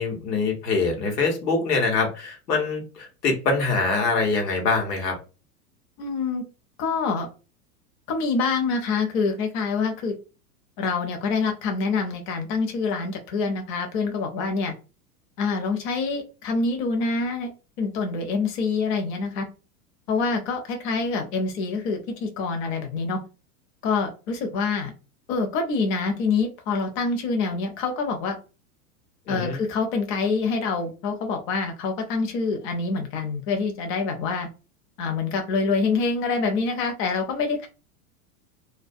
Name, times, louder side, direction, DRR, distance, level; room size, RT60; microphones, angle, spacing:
voice 1, 0.0-5.2 29.3-29.6, left 4 dB, 85° left, 2 dB, 1.1 m, -24 dB
voice 2, 6.0-6.4 6.8-7.3 8.1-10.1 10.8-14.7 15.4-17.5 17.8-19.5 20.1-23.2 23.8-24.9 25.3-28.4 29.3-34.5 35.0-37.7, left 4 dB, 40° left, 4 dB, 0.7 m, -26 dB
2.3 x 2.2 x 2.5 m, 0.32 s
hypercardioid pair, 105°, 47 cm